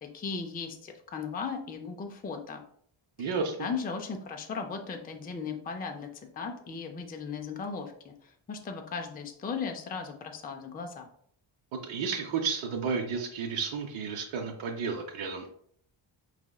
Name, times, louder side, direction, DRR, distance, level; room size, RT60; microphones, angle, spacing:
voice 1, 0.0-2.6 3.2-3.3 3.6-6.1 6.3-11.1, left 5 dB, 20° left, 4 dB, 0.3 m, -37 dB
voice 2, 3.2-3.7 11.7-15.5, right 5 dB, 80° right, 2 dB, 0.7 m, -32 dB
4.8 x 4.1 x 2.3 m, 0.64 s
wide cardioid pair, 170°, 48 cm